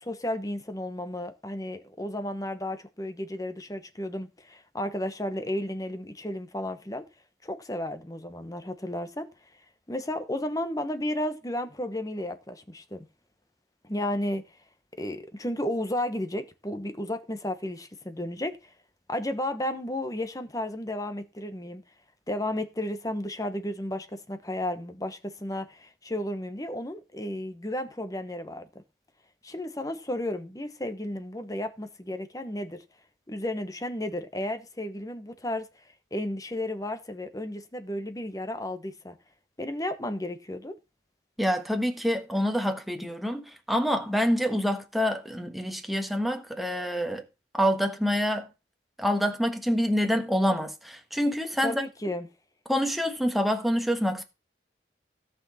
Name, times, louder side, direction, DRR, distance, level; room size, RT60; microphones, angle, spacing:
voice 1, 0.0-7.1 7.4-9.3 9.9-13.1 13.8-14.4 15.0-18.7 19.1-21.8 22.3-28.7 29.4-32.8 33.3-35.7 36.1-39.2 39.6-40.8 51.6-52.3, left 1 dB, 20° left, 1.1 m, -33 dB
voice 2, 41.4-47.2 47.6-48.5 49.0-51.8 52.7-54.2, equal, ahead, 1.4 m, -26 dB
17.0 x 6.2 x 4.2 m
head